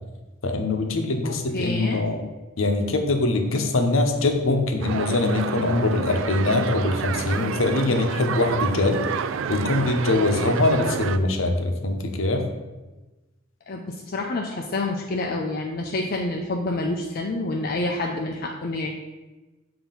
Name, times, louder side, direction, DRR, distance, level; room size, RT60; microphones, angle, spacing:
voice 1, 0.4-2.2 2.6-9.0 9.5-12.4, left 2 dB, 75° left, 5 dB, 0.9 m, -23 dB
voice 2, 1.2-2.0 13.7-18.9, left 2 dB, 45° left, 0 dB, 0.5 m, -28 dB
sound 1, 4.8-11.2, right 6 dB, 65° right, 0.3 m, -29 dB
7.3 x 2.9 x 5.6 m, 1.1 s
head